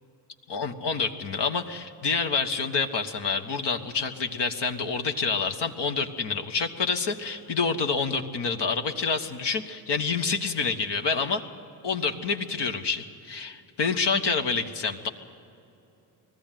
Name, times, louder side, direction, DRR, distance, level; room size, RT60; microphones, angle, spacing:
voice 1, 0.5-11.4 11.8-15.1, left 5 dB, 60° left, 6 dB, 1.5 m, -28 dB
20.0 x 14.0 x 9.2 m, 2.8 s
supercardioid pair, 55°, 47 cm